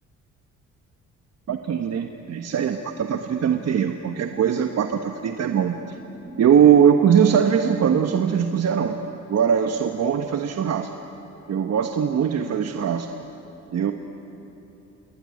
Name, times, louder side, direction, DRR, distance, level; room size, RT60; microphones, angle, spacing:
voice 1, 1.5-5.9 6.4-9.0 9.3-10.9 11.5-13.1 13.7-13.9, right 8 dB, 55° right, 5 dB, 1.3 m, -21 dB
sound 1, 5.6-8.6, right 1 dB, 25° right, 5.6 m, -47 dB
28.5 x 20.5 x 9.7 m, 3.0 s
cardioid pair, 90°, 30 cm